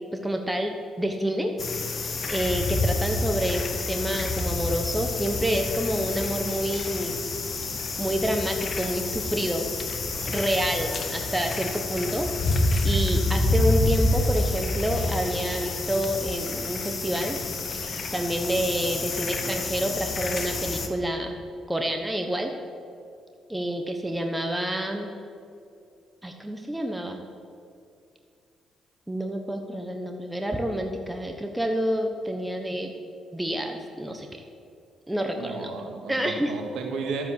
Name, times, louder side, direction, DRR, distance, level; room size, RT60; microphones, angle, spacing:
voice 1, 0.0-1.5 2.3-7.1 8.0-9.7 10.2-12.6 12.8-17.4 18.1-21.4 21.7-22.5 23.5-25.1 26.2-27.2 29.1-32.9 33.3-34.3 35.1-35.7 36.1-36.5, equal, 5° right, 3 dB, 1.1 m, -28 dB
sound 1, 1.6-20.9, left 2 dB, 45° left, 1.6 m, -28 dB
voice 2, 35.3-37.2, right 4 dB, 75° right, 2 dB, 2.3 m, -34 dB
12.0 x 7.9 x 8.0 m, 2.5 s
cardioid pair, 90°, 0 cm